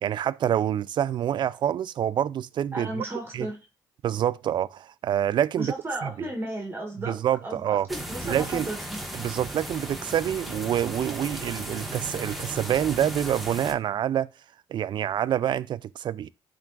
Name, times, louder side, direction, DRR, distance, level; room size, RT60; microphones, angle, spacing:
voice 1, 0.0-3.0 3.3-3.5 4.0-5.7 6.0-6.1 7.1-7.9 8.2-8.7 9.2-14.3 14.7-16.3, right 10 dB, 60° right, 0.4 m, -27 dB
voice 2, 2.7-3.6 5.6-9.0, right 1 dB, 25° right, 1.7 m, -34 dB
sound 1, 7.9-13.7, right 1 dB, ahead, 1.4 m, -36 dB
10.5 x 3.7 x 2.5 m
cardioid pair, 75°, 9 cm